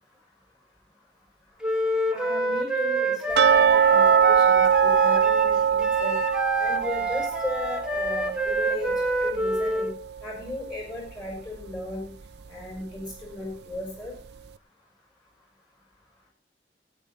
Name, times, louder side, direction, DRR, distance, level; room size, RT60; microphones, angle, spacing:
Wind instrument woodwind instrument, 1.6-10.0, right 1 dB, 5° right, 0.9 m, -27 dB
voice 1, 2.1-6.2 6.6-8.9 9.2-9.9 10.2-12.1 12.5-14.1, left 1 dB, 25° left, 0 dB, 5.8 m, -36 dB
sound 1, 3.4-10.2 10.5-10.6 11.1-11.2 11.7-11.8, right 7 dB, 70° right, 0.6 m, -22 dB
17.5 x 9.2 x 4.0 m, 0.39 s
head